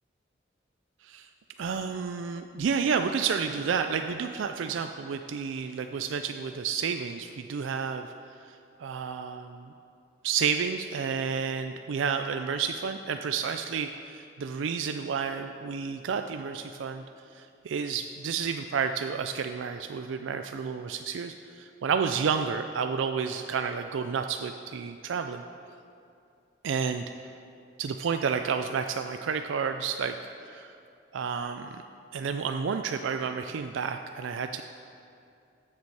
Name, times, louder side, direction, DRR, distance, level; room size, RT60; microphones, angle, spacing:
voice 1, 1.6-8.1 8.4-9.7 10.2-17.0 17.3-25.4 26.6-27.1 27.8-30.1 30.4-30.8 31.1-31.8 32.1-34.6, right 6 dB, 85° right, 7 dB, 0.4 m, -30 dB
14.0 x 6.7 x 4.7 m, 2.5 s
head